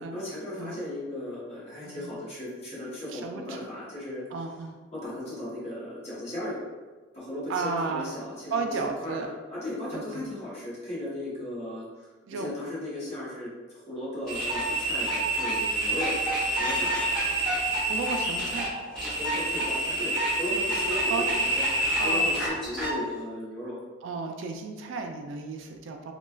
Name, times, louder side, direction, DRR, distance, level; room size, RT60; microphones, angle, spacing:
voice 1, 0.0-4.2 4.9-6.6 7.1-16.1 16.6-16.9 19.1-23.7, left 1 dB, 30° left, -9 dB, 1.0 m, -36 dB
voice 2, 3.1-3.6 4.3-4.8 7.5-8.1 8.5-9.3 9.9-10.3 12.3-12.5 17.9-18.7 21.1-21.2 22.0-22.3 24.0-26.1, right 4 dB, 75° right, 4 dB, 0.3 m, -33 dB
sound 1, 14.3-22.9, right 1 dB, 5° left, 1.4 m, -27 dB
3.2 x 2.2 x 2.2 m, 1.3 s
head